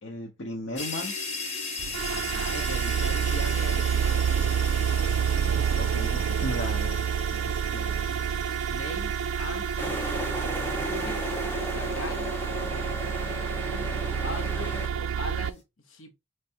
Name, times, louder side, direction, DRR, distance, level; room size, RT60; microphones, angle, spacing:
voice 1, 0.0-1.1 5.4-8.1, left 1 dB, 60° left, 0.8 m, -37 dB
sound 1, 0.8-14.4, left 3 dB, 35° left, 1.0 m, -39 dB
sound 2, 1.8-15.5, right 7 dB, 85° right, 0.3 m, -28 dB
voice 2, 2.1-4.4 8.7-10.2 10.7-11.2 11.6-12.4 13.5-16.2, left 1 dB, 80° left, 1.0 m, -40 dB
sound 3, 9.8-14.9, left 1 dB, 10° left, 0.6 m, -35 dB
4.5 x 3.3 x 2.8 m
head